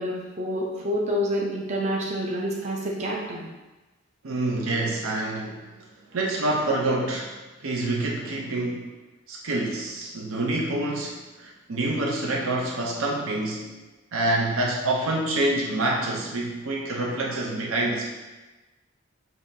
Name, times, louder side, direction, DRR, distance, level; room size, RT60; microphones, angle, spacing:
voice 1, 0.0-3.5, equal, 30° right, -3 dB, 0.6 m, -28 dB
voice 2, 4.2-5.7 6.1-7.3 7.6-8.9 9.3-13.7 14.1-18.1, right 2 dB, 75° right, -1 dB, 0.6 m, -27 dB
7.0 x 2.7 x 2.7 m, 1.2 s
head